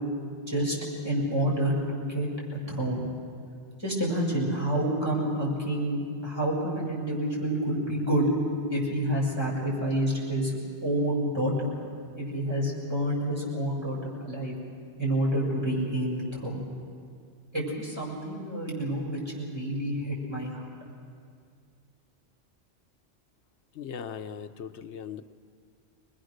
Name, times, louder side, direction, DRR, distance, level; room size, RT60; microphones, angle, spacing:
voice 1, 1.0-2.3 2.7-3.0 3.8-8.3 8.7-10.5 10.8-11.7 12.1-14.5 15.0-16.6 17.5-20.7, right 1 dB, 25° right, -4 dB, 6.2 m, -28 dB
voice 2, 23.8-25.2, left 7 dB, 85° left, 10 dB, 1.0 m, -38 dB
25.0 x 21.0 x 6.5 m, 2.3 s
omnidirectional pair, 1.1 m